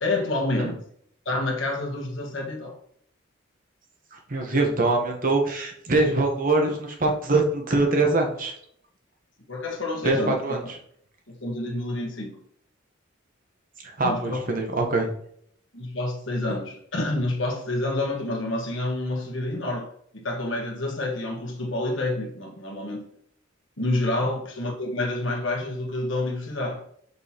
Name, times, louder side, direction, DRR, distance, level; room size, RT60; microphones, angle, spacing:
voice 1, 0.0-0.8 1.2-2.8 9.5-10.4 11.4-12.4 14.0-14.4 15.7-23.1 23.8-26.8, left 2 dB, 65° left, 1 dB, 1.4 m, -28 dB
voice 2, 4.1-8.5 10.0-10.6 13.8-15.1, right 2 dB, 40° right, 2 dB, 1.0 m, -23 dB
6.1 x 5.5 x 2.9 m, 0.67 s
head